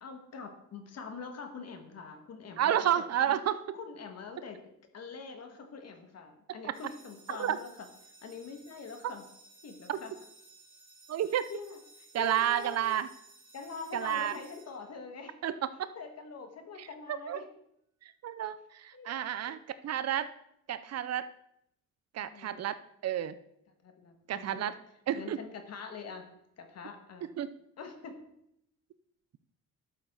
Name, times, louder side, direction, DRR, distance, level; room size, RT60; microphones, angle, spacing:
voice 1, 0.0-3.4 3.7-4.6 4.9-7.9 8.2-9.2 9.6-10.1 11.5-13.0 13.5-15.4 15.9-17.4 18.9-19.5 22.2-22.6 23.8-24.6 25.2-26.2 26.6-27.3 27.8-28.1, left 5 dB, 50° left, 6 dB, 1.7 m, -44 dB
voice 2, 2.6-3.5 7.4-7.6 9.0-9.1 9.9-10.0 11.1-11.5 12.1-13.1 13.9-14.4 15.4-15.9 16.8-17.4 18.0-20.3 20.7-21.3 22.1-22.8 23.0-23.4 24.3-24.7 25.1-25.4 27.4-27.5, right 10 dB, 50° right, 14 dB, 0.5 m, -31 dB
sound 1, 6.7-15.4, right 3 dB, 15° right, 2.6 m, -58 dB
12.0 x 7.1 x 3.8 m, 0.78 s
cardioid pair, 110°, 33 cm